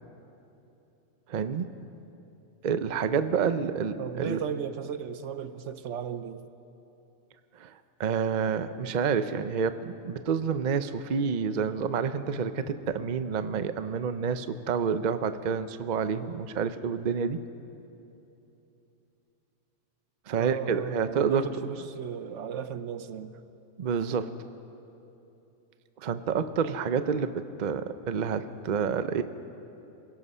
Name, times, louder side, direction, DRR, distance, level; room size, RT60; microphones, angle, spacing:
voice 1, 1.3-1.7 2.6-4.4 7.6-17.4 20.3-21.4 23.8-24.3 26.0-29.2, right 6 dB, 45° right, 11 dB, 0.7 m, -28 dB
voice 2, 4.0-6.4 20.4-23.3, right 8 dB, 70° right, 12 dB, 1.0 m, -35 dB
27.0 x 17.5 x 5.5 m, 2.9 s
omnidirectional pair, 1.3 m